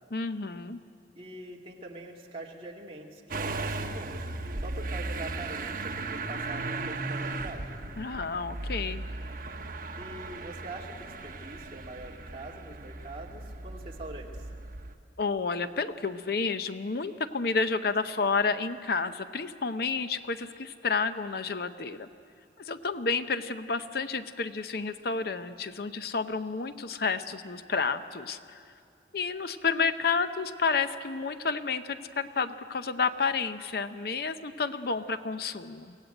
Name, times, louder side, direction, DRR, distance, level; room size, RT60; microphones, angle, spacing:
voice 1, 0.1-0.8 8.0-9.0 15.2-22.1 22.6-28.6 29.1-36.0, left 4 dB, 60° left, 11 dB, 0.7 m, -30 dB
voice 2, 1.2-4.3 4.6-7.8 10.0-14.5, right 2 dB, 30° right, -1 dB, 2.3 m, -44 dB
Motor vehicle (road) / Engine starting, 3.3-14.9, right 3 dB, 50° right, 1.1 m, -36 dB
23.5 x 17.0 x 9.0 m, 2.3 s
head